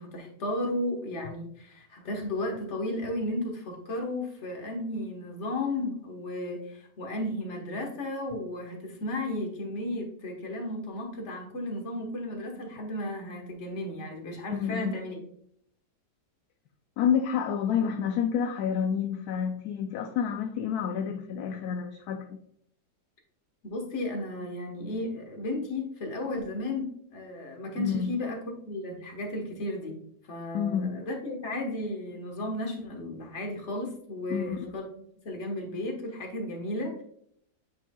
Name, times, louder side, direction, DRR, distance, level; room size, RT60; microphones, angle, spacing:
voice 1, 0.0-15.2 23.6-28.4 28.7-30.0 30.3-34.9 35.2-37.0, left 1 dB, 45° left, 1 dB, 1.6 m, -34 dB
voice 2, 14.5-15.0 17.0-22.4 27.8-28.1 30.5-31.0 34.3-34.7, left 8 dB, 75° left, 5 dB, 1.0 m, -29 dB
8.6 x 5.4 x 2.3 m, 0.68 s
omnidirectional pair, 1.8 m